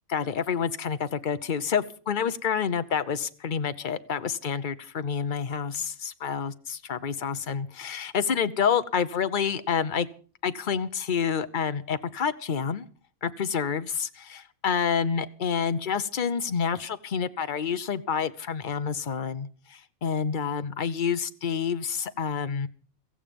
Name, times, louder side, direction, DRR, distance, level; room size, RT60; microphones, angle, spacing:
voice 1, 0.1-10.1 10.4-12.9 13.2-22.7, left 7 dB, 40° left, 11 dB, 0.9 m, -28 dB
16.0 x 15.0 x 5.3 m, 0.41 s
omnidirectional pair, 1.5 m